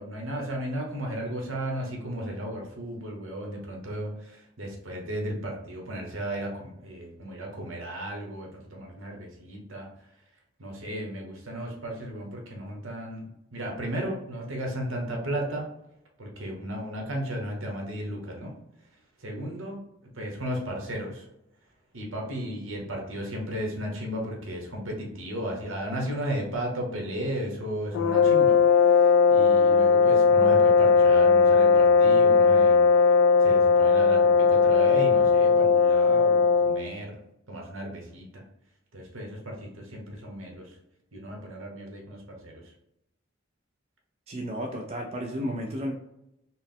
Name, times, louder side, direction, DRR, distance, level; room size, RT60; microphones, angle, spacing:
voice 1, 0.0-9.9 10.6-15.7 16.2-18.5 19.2-19.8 20.1-21.3 21.9-32.8 33.4-37.2 37.5-38.4 38.9-40.8 41.1-42.7, right 1 dB, 75° right, 0 dB, 1.0 m, -35 dB
sound 1, 27.9-36.9, left 5 dB, 85° left, 0.3 m, -19 dB
voice 2, 44.3-45.9, equal, 30° right, 1 dB, 0.4 m, -32 dB
4.2 x 2.1 x 3.5 m, 0.85 s
head